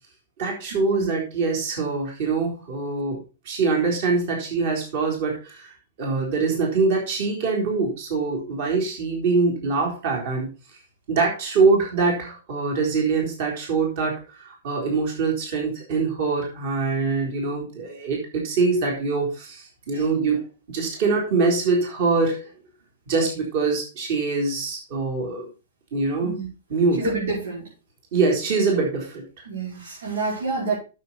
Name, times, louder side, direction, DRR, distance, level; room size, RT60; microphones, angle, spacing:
voice 1, 0.4-3.2 3.5-10.5 11.1-20.4 20.7-22.5 23.1-25.5 25.9-26.3 26.7-27.0 28.1-29.2, right 4 dB, 45° right, 0 dB, 3.9 m, -24 dB
voice 2, 26.9-27.7 29.5-30.7, right 3 dB, 85° right, -6 dB, 5.3 m, -28 dB
9.4 x 7.5 x 4.2 m, 0.31 s
hypercardioid pair, 170°, 0 cm